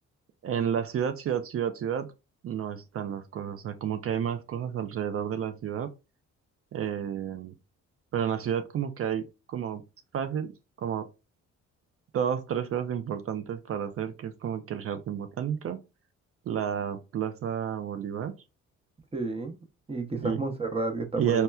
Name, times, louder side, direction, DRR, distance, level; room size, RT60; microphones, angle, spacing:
voice 1, 0.4-2.1 2.4-5.9 6.7-7.5 8.1-9.8 10.1-10.5 10.8-11.1 12.1-15.8 16.5-18.3 20.2-20.4 21.2-21.4, right 8 dB, 50° right, 0.4 m, -31 dB
voice 2, 19.1-19.6 19.9-21.4, right 3 dB, 20° right, 0.7 m, -31 dB
4.2 x 2.1 x 2.3 m
cardioid pair, 90°, 30 cm